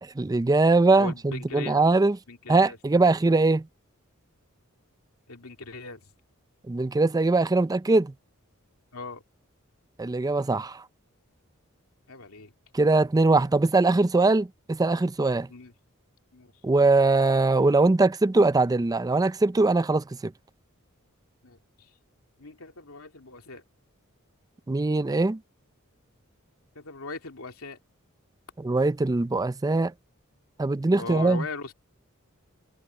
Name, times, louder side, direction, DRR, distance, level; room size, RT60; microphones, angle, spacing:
voice 1, 0.0-2.2 2.5-3.7 6.7-8.1 10.0-10.8 12.7-15.5 16.6-20.3 24.7-25.4 28.6-29.9 30.6-31.4, right 3 dB, 15° right, 0.4 m, -22 dB
voice 2, 1.0-1.8 2.3-2.8 3.0-3.1 5.3-6.1 8.9-9.2 12.1-12.5 15.5-15.7 16.3-16.5 21.4-21.9 22.4-23.6 26.7-27.8 31.0-31.7, left 3 dB, 85° left, 2.7 m, -39 dB
head